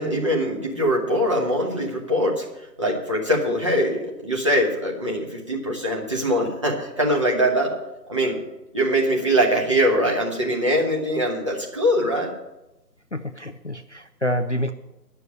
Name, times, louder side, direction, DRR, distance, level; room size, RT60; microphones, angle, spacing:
voice 1, 0.0-7.8 8.1-8.4 8.7-12.3, equal, 20° right, -2 dB, 1.0 m, -22 dB
voice 2, 13.1-14.7, equal, 45° left, 9 dB, 0.5 m, -27 dB
11.0 x 6.8 x 8.1 m, 0.96 s
figure-of-eight pair, 155°, 50 cm